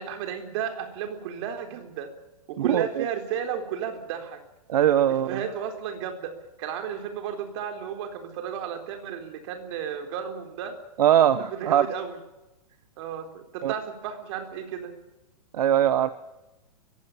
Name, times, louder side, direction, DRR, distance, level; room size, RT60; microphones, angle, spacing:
voice 1, 0.0-2.1 2.5-4.4 5.1-6.3 6.6-10.8 11.5-12.2 13.0-14.9, right 8 dB, 45° right, 5 dB, 3.9 m, -33 dB
voice 2, 2.6-3.1 4.7-5.4 11.0-11.9 13.6-13.7 15.5-16.1, right 11 dB, 70° right, 12 dB, 1.2 m, -21 dB
22.5 x 16.5 x 8.8 m, 0.99 s
hypercardioid pair, 155°, 20 cm